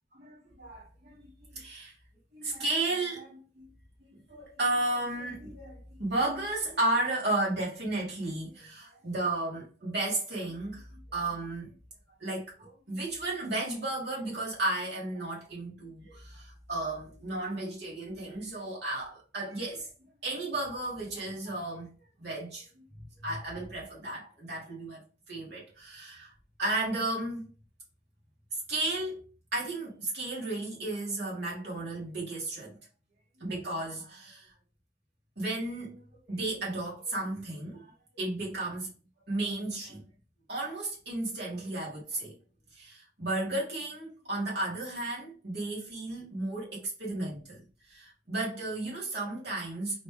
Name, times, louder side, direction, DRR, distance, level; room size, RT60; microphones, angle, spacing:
voice 1, 0.2-1.2 1.5-1.9 2.3-3.7 4.1-11.7 12.2-19.9 20.2-21.9 22.2-22.8 23.2-26.3 26.6-27.4 28.7-29.2 29.5-32.8 33.4-34.5 35.4-38.9 39.3-40.0 40.5-42.4 42.7-47.6 47.9-50.0, right 2 dB, 65° right, 2.3 m, -34 dB
4.0 x 3.3 x 3.6 m
head